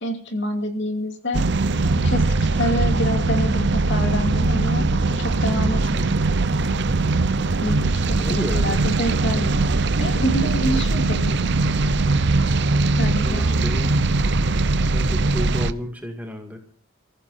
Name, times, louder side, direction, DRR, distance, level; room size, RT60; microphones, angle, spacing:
voice 1, 0.0-1.5 2.0-2.3 2.5-6.1 7.6-9.7 10.0-11.3 13.0-13.4, equal, 55° left, 5 dB, 2.5 m, -27 dB
sound 1, 1.3-15.7, right 3 dB, 55° right, 0.7 m, -21 dB
voice 2, 8.2-9.0 13.2-14.0 14.9-16.6, equal, 5° right, 3 dB, 2.2 m, -31 dB
30.0 x 15.0 x 2.7 m, 0.44 s
head